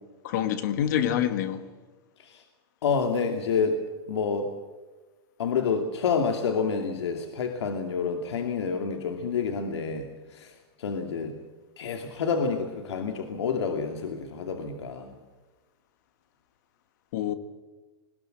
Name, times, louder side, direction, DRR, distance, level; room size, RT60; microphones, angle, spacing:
voice 1, 0.2-1.6 17.1-17.3, left 10 dB, 40° left, 1.7 m, -26 dB
voice 2, 2.8-3.8 4.1-4.5 5.4-11.4 11.8-15.2, left 5 dB, 85° left, 2.5 m, -28 dB
21.5 x 20.0 x 8.0 m
supercardioid pair, 180°, 14 cm